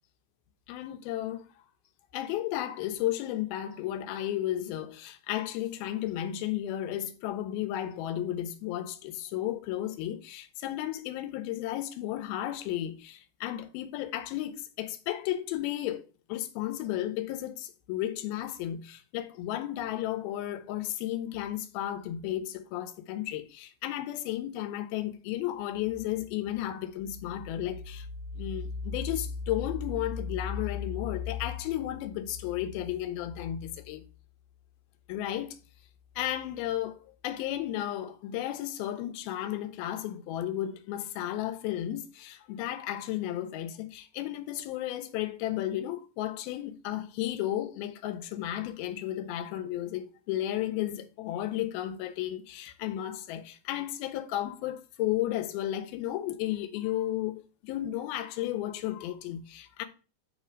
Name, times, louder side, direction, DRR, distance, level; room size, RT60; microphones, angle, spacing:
voice 1, 0.7-1.5 2.1-28.1 28.4-34.1 35.1-35.6 36.2-59.9, left 12 dB, 90° left, 2.6 m, -33 dB
6.7 x 3.3 x 5.0 m
omnidirectional pair, 4.2 m